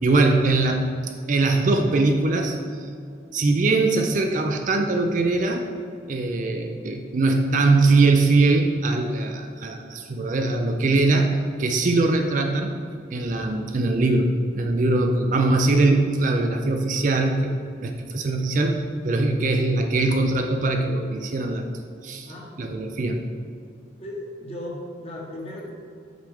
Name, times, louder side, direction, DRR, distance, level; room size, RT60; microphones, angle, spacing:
voice 1, 0.0-2.9 3.3-5.7 6.1-12.8 13.1-17.5 17.8-21.7 22.0-22.3 22.6-23.2, right 2 dB, 40° right, 4 dB, 0.4 m, -22 dB
voice 2, 22.3-22.6 24.0-25.7, left 1 dB, 30° left, -3 dB, 1.2 m, -36 dB
7.4 x 4.9 x 3.5 m, 2.3 s
head